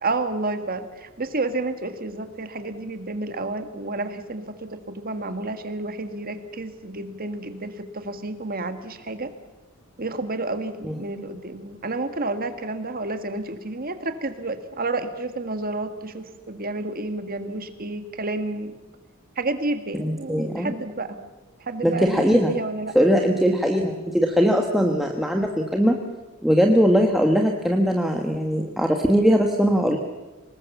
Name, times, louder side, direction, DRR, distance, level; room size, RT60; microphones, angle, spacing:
voice 1, 0.0-9.3 10.0-18.8 19.4-21.2 21.6-23.0, right 2 dB, 45° right, 8 dB, 1.7 m, -30 dB
voice 2, 20.0-20.7 21.8-22.5 22.9-26.0 26.4-30.0, equal, ahead, 1 dB, 1.4 m, -20 dB
24.5 x 20.0 x 7.2 m, 1.2 s
head